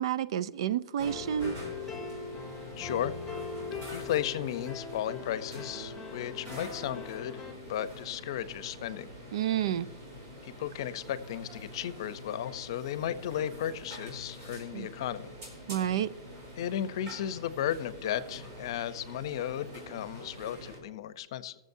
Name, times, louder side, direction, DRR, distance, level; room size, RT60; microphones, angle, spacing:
voice 1, 0.0-1.6 9.3-9.9 14.7-14.9 15.7-16.1, right 10 dB, 75° right, 0.4 m, -30 dB
sound 1, 1.0-7.5, left 4 dB, 5° left, 2.2 m, -41 dB
sound 2, 1.0-20.8, equal, 50° right, 3.9 m, -46 dB
voice 2, 2.8-3.1 3.9-7.4 7.7-9.1 10.4-15.4 16.6-21.6, left 11 dB, 65° left, 0.6 m, -35 dB
20.5 x 7.3 x 2.7 m
hypercardioid pair, 140°, 3 cm